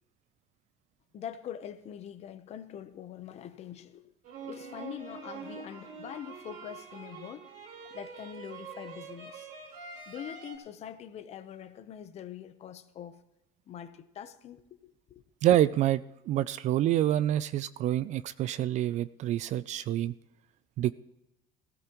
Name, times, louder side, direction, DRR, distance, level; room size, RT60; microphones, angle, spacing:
voice 1, 1.1-4.1 4.4-7.5 7.9-9.5 10.1-13.2 13.7-15.2, left 9 dB, 40° left, 0.9 m, -43 dB
sound 1, 4.2-10.5, right 5 dB, 60° right, 3.8 m, -45 dB
voice 2, 15.4-20.1 20.8-20.9, right 12 dB, 40° right, 0.4 m, -27 dB
18.5 x 16.0 x 3.0 m
cardioid pair, 180°, 18 cm